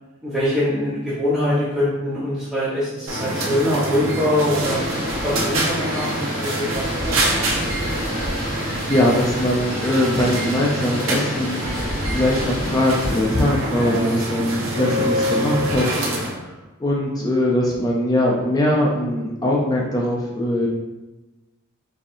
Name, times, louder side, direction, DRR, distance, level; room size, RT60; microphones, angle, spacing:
voice 1, 0.2-4.8 5.2-7.6, left 1 dB, ahead, -13 dB, 1.0 m, -23 dB
sound 1, 3.1-16.4, right 1 dB, 75° right, 0.7 m, -25 dB
sound 2, 4.6-13.1, equal, 45° left, 1.0 m, -31 dB
voice 2, 8.9-11.6 12.1-16.5 16.8-20.7, left 1 dB, 20° left, -3 dB, 0.4 m, -21 dB
4.2 x 2.6 x 2.5 m, 1.1 s
head